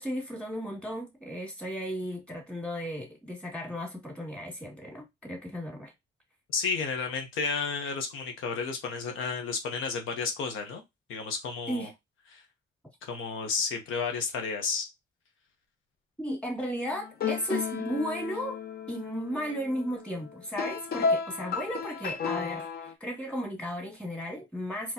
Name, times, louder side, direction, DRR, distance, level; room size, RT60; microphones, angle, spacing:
voice 1, 0.0-5.9 11.7-11.9 16.2-18.6 18.9-24.9, equal, 5° left, 2.0 m, -35 dB
voice 2, 6.5-10.8 11.1-11.9 12.3-12.4 13.0-14.9, left 5 dB, 85° left, 0.8 m, -32 dB
sound 1, 16.9-22.9, left 5 dB, 50° left, 0.7 m, -33 dB
4.0 x 2.9 x 2.7 m
cardioid pair, 90°, 20 cm